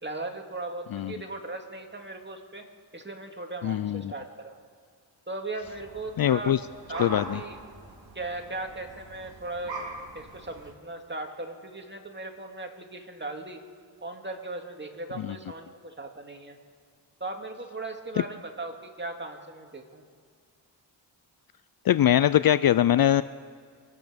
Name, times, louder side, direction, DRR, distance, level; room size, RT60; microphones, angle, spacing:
voice 1, 0.0-2.6 2.9-4.6 5.3-6.6 6.9-7.6 8.1-9.8 10.1-13.6 14.0-16.6 17.2-20.0, right 2 dB, 25° right, 3 dB, 2.3 m, -38 dB
voice 2, 3.6-4.1 6.2-6.6 7.0-7.4 15.2-15.4 21.9-23.2, left 11 dB, 50° left, 15 dB, 0.5 m, -22 dB
sound 1, 5.6-10.7, right 3 dB, 70° right, 3.1 m, -43 dB
25.0 x 8.4 x 5.2 m, 2.1 s
cardioid pair, 50°, 46 cm